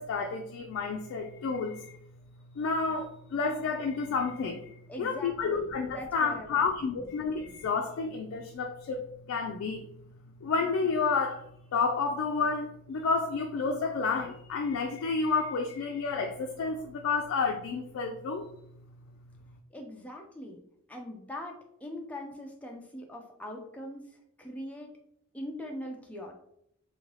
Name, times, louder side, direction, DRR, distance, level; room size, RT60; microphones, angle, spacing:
voice 1, 0.0-1.9 2.6-9.0 9.3-9.9 10.4-11.4 11.7-18.5, left 4 dB, 75° left, 3 dB, 0.3 m, -30 dB
voice 2, 4.9-7.3 19.7-20.6 20.9-24.0 24.4-24.9 25.3-26.3, left 1 dB, 5° left, 1 dB, 0.4 m, -42 dB
2.7 x 2.6 x 3.1 m, 0.75 s
head